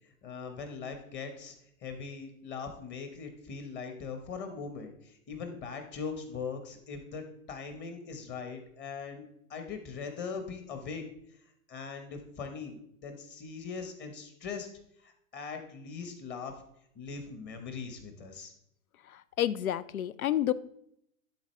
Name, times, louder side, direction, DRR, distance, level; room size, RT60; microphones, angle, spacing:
voice 1, 0.2-1.5 1.8-9.2 9.5-11.0 11.7-14.7 15.0-16.6 16.9-18.5, left 5 dB, 25° left, 6 dB, 1.1 m, -40 dB
voice 2, 19.1-20.5, left 12 dB, 85° left, 17 dB, 0.5 m, -30 dB
11.5 x 3.8 x 3.2 m, 0.72 s
hypercardioid pair, 115°, 41 cm